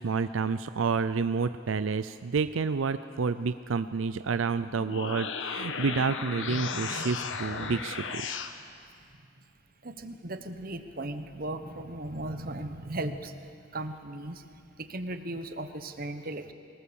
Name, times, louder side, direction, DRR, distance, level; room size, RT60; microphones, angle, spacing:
voice 1, 0.0-8.4, right 5 dB, 85° right, 12 dB, 0.5 m, -29 dB
sound 1, 4.7-8.5, left 5 dB, 75° left, 1.2 m, -35 dB
voice 2, 9.8-13.4 13.7-14.5 14.8-16.5, right 1 dB, 50° right, 9 dB, 1.2 m, -37 dB
23.0 x 19.0 x 7.0 m, 2.3 s
head